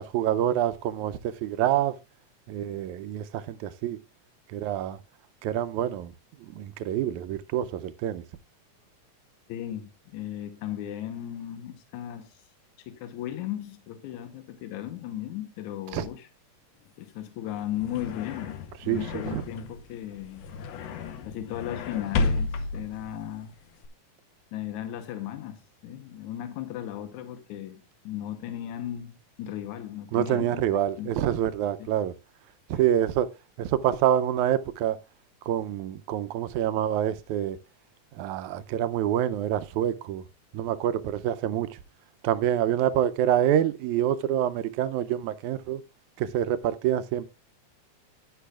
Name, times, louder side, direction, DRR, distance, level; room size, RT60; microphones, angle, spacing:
voice 1, 0.0-2.0 2.5-4.0 4.5-5.0 5.4-6.1 6.4-8.2 15.9-16.1 18.9-19.4 30.1-32.1 32.7-33.3 33.6-35.0 35.5-37.6 38.1-40.2 40.5-41.8 42.2-45.8 46.2-47.3, right 11 dB, 80° right, 2.0 m, -26 dB
voice 2, 9.5-12.4 12.8-16.3 17.0-20.4 21.2-23.5 24.5-29.1 29.4-30.6 31.0-31.1 31.8-31.9 32.7-32.8, left 11 dB, 85° left, 2.3 m, -36 dB
sound 1, 17.5-23.9, left 3 dB, 70° left, 1.9 m, -33 dB
11.5 x 10.0 x 2.3 m
omnidirectional pair, 3.4 m